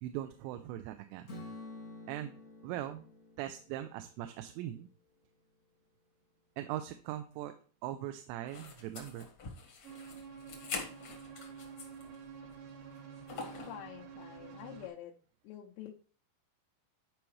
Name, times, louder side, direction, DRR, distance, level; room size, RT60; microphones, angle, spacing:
voice 1, 0.0-1.3 2.1-2.3 2.6-3.1 3.4-4.9 6.6-7.5 7.8-9.3, right 12 dB, 85° right, 8 dB, 2.8 m, -40 dB
Strum, 1.3-5.4, left 2 dB, 45° left, 1.2 m, -51 dB
sound 1, 8.5-12.1 12.5-12.6 13.3-13.8, left 5 dB, 65° left, 1.5 m, -44 dB
sound 2, 9.8-14.9, right 6 dB, 65° right, 2.7 m, -49 dB
voice 2, 13.7-15.1 15.4-15.9, left 11 dB, 85° left, -2 dB, 3.0 m, -47 dB
11.5 x 4.7 x 3.1 m, 0.40 s
omnidirectional pair, 5.0 m